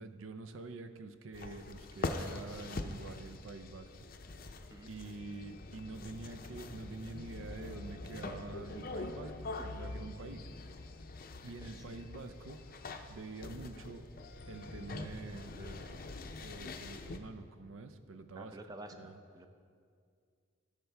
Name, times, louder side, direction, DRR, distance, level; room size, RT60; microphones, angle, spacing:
voice 1, 0.0-3.9 4.8-10.5 11.4-12.6 13.1-14.0 14.5-18.6 18.9-19.2, right 3 dB, 80° right, 9 dB, 0.6 m, -47 dB
sound 1, 1.3-17.2, left 2 dB, 45° left, 0.5 m, -44 dB
voice 2, 18.3-19.5, right 1 dB, 20° right, 6 dB, 0.5 m, -50 dB
16.5 x 6.7 x 3.4 m, 2.2 s
head